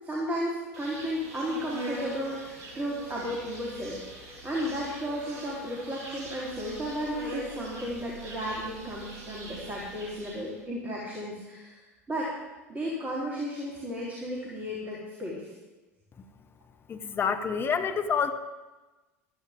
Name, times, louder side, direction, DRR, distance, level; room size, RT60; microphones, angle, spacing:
voice 1, 0.0-11.8 12.1-12.3 12.7-15.4, equal, 20° right, -5 dB, 3.6 m, -34 dB
Insect, 0.7-10.6, right 2 dB, 40° right, 4.8 m, -42 dB
voice 2, 16.9-18.3, left 6 dB, 25° left, 8 dB, 1.0 m, -27 dB
15.0 x 13.5 x 3.7 m, 1.1 s
figure-of-eight pair, 75°, 8 cm